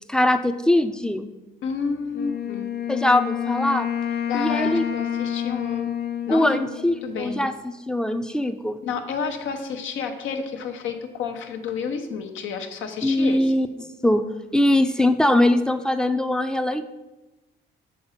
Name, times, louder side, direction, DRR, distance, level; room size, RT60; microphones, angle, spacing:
voice 1, 0.1-1.3 2.9-3.9 4.3-4.8 6.3-8.8 13.0-13.7 14.0-14.3 14.5-16.8, left 1 dB, 5° left, 8 dB, 0.5 m, -21 dB
voice 2, 1.6-2.7 4.3-5.9 6.3-6.6 7.0-7.5 8.8-13.5, left 5 dB, 80° left, 5 dB, 1.0 m, -30 dB
Wind instrument woodwind instrument, 2.1-7.6, left 10 dB, 55° left, 0.6 m, -29 dB
7.6 x 3.9 x 5.8 m, 1.1 s
cardioid pair, 90°, 20 cm